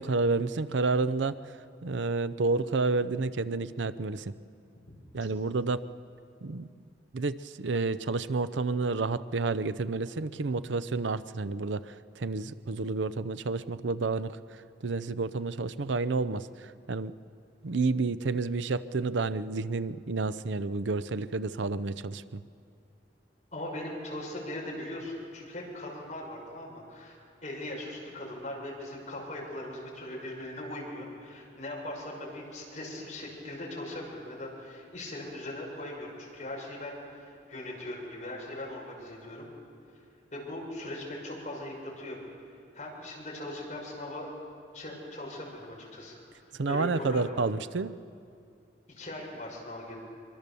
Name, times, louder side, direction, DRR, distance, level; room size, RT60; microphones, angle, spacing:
voice 1, 0.0-1.4 1.8-4.3 5.1-5.8 6.4-6.7 7.1-14.4 14.8-17.1 17.6-22.4 46.6-47.9, right 3 dB, 90° right, 14 dB, 0.6 m, -30 dB
voice 2, 23.5-39.5 40.3-42.2 42.7-44.3 44.7-46.2 46.7-47.3 48.9-49.9, left 1 dB, 40° left, -2 dB, 6.0 m, -40 dB
24.0 x 24.0 x 6.9 m, 2.4 s
head